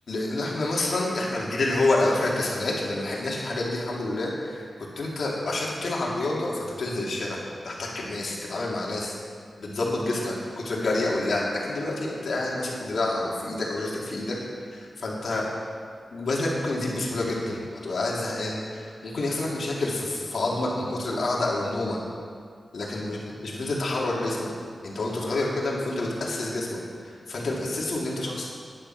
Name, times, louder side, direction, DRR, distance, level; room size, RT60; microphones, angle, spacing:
voice 1, 0.1-4.6 5.0-9.1 9.6-10.3 10.6-14.4 14.7-15.4 16.1-22.0 22.7-24.5 24.8-26.8 27.0-28.5, left 2 dB, 75° left, -4 dB, 2.6 m, -28 dB
10.5 x 10.0 x 5.9 m, 2.1 s
wide cardioid pair, 125°, 0 cm